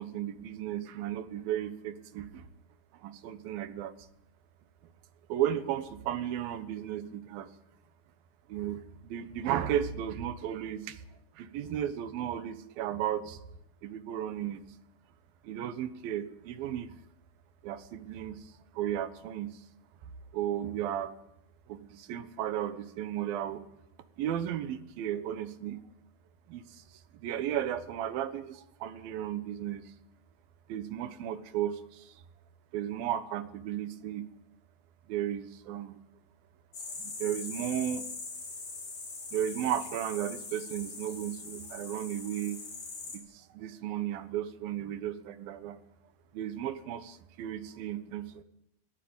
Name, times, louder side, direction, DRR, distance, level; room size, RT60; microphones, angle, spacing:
voice 1, 0.0-2.4 3.0-3.9 5.3-7.5 8.5-11.0 11.3-13.4 13.8-14.6 15.4-16.9 17.6-19.5 20.3-21.1 21.7-23.6 24.2-25.8 26.5-26.8 27.2-29.9 30.7-32.1 32.7-34.3 35.1-36.0 37.0-38.1 39.3-42.6 43.1-45.8 46.3-48.4, right 11 dB, 80° right, 13 dB, 3.0 m, -34 dB
sound 1, 36.7-43.2, left 3 dB, 45° left, 5.7 m, -42 dB
22.0 x 17.0 x 8.9 m, 0.80 s
omnidirectional pair, 4.2 m